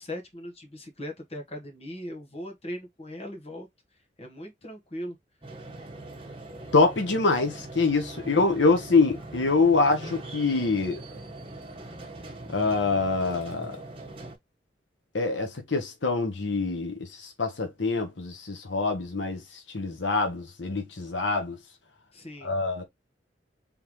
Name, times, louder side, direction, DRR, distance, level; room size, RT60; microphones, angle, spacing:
voice 1, 0.0-3.7 4.2-5.2 8.2-8.8 22.1-22.6, equal, 35° left, 1.4 m, -39 dB
sound 1, 5.4-14.4, right 2 dB, 30° right, 1.2 m, -42 dB
voice 2, 6.7-11.0 12.5-13.8 15.1-19.4 19.7-21.6 22.4-22.8, left 3 dB, 80° left, 1.1 m, -25 dB
3.7 x 3.6 x 3.0 m
head